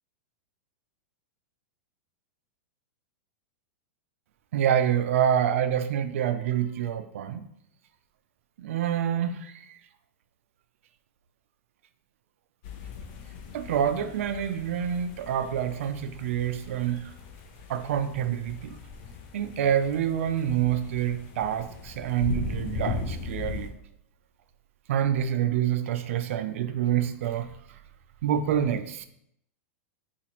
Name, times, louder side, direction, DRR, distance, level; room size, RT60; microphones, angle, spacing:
voice 1, 4.5-7.5 8.6-9.8 13.5-17.0 17.7-18.8 19.3-23.7 24.9-27.5 28.2-29.0, right 9 dB, 70° right, 0.4 m, -27 dB
sound 1, 12.6-23.7, left 4 dB, 50° left, 0.6 m, -38 dB
3.9 x 2.4 x 2.9 m
hypercardioid pair, 130°, 7 cm